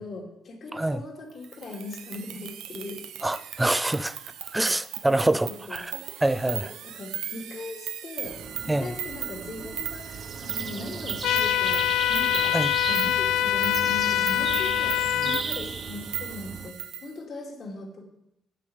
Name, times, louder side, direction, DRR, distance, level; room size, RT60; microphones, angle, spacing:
voice 1, 0.0-3.5 5.1-12.5 12.9-18.0, left 2 dB, 55° left, 2.6 m, -39 dB
sound 1, 1.4-17.1, right 10 dB, 85° right, 0.8 m, -37 dB
voice 2, 3.2-4.2 4.5-5.9 6.2-6.6 8.7-8.9 12.5-12.7 15.2-15.3, right 1 dB, 10° right, 0.5 m, -25 dB
sound 2, 8.2-16.7, right 5 dB, 45° right, 0.9 m, -36 dB
sound 3, 11.2-15.4, left 13 dB, 80° left, 0.4 m, -24 dB
8.4 x 7.3 x 8.6 m
cardioid pair, 90°, 0 cm